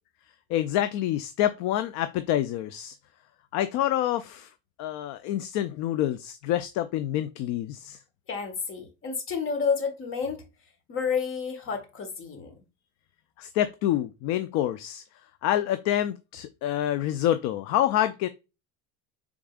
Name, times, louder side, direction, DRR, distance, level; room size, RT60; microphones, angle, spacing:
voice 1, 0.5-3.0 3.5-4.5 4.8-8.0 13.4-15.0 15.4-18.3, left 12 dB, 60° left, 0.5 m, -27 dB
voice 2, 8.3-10.4 10.9-12.5, left 6 dB, 40° left, 1.4 m, -30 dB
4.9 x 3.6 x 2.3 m
supercardioid pair, 110°, 32 cm